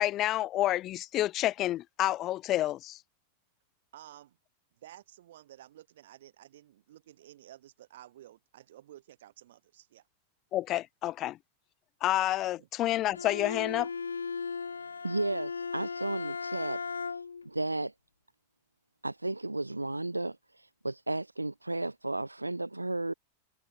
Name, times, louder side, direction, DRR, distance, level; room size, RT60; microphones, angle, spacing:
voice 1, 0.0-3.0 10.5-11.4 12.0-13.9, left 14 dB, 35° left, 0.7 m, -29 dB
voice 2, 3.9-4.4 4.7-10.1 12.6-12.7, right 13 dB, 60° right, 4.0 m, -53 dB
Bowed string instrument, 13.1-17.5, left 5 dB, 75° left, 1.1 m, -37 dB
voice 3, 15.0-16.8 17.1-17.9 19.0-23.1, right 2 dB, 85° right, 0.4 m, -34 dB
figure-of-eight pair, 90°, 0 cm